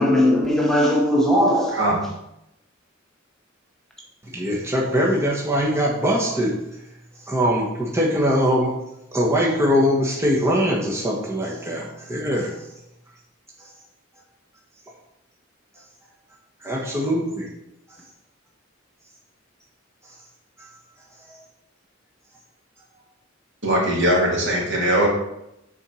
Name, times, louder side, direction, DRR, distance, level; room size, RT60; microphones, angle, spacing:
voice 1, 0.0-2.0, left 1 dB, ahead, 0.9 m, -19 dB
voice 2, 4.3-6.6 7.3-8.7 9.1-12.6 16.6-17.5 21.3-21.4, equal, 15° right, 1.2 m, -22 dB
voice 3, 23.6-25.1, right 1 dB, 65° right, 2.4 m, -20 dB
7.2 x 4.4 x 6.2 m
head